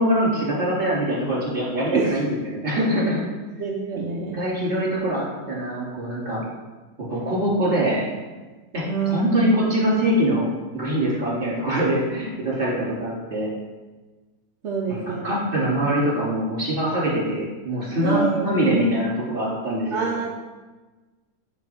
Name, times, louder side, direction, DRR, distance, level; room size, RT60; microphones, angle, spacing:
voice 1, 0.0-3.2 3.9-4.0 4.3-6.4 7.1-8.1 8.7-10.5 10.7-13.5 14.9-20.1, equal, 30° right, -6 dB, 2.9 m, -23 dB
voice 2, 3.6-4.4 8.9-9.5 14.6-15.3 18.0-18.4 19.9-20.3, right 6 dB, 55° right, -2 dB, 0.8 m, -26 dB
9.2 x 5.7 x 3.5 m, 1.3 s
omnidirectional pair, 1.8 m